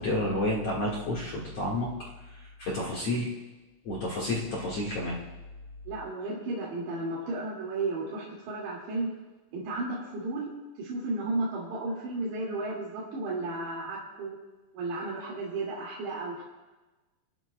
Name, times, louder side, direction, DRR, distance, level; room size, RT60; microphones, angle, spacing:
voice 1, 0.0-1.9 2.3-3.3 3.8-5.2, left 1 dB, 60° left, -5 dB, 1.7 m, -30 dB
voice 2, 5.9-9.1 9.5-10.5 10.8-14.4 14.7-16.4, right 2 dB, 70° right, -6 dB, 4.3 m, -33 dB
30.0 x 12.0 x 2.2 m, 1.2 s
omnidirectional pair, 5.5 m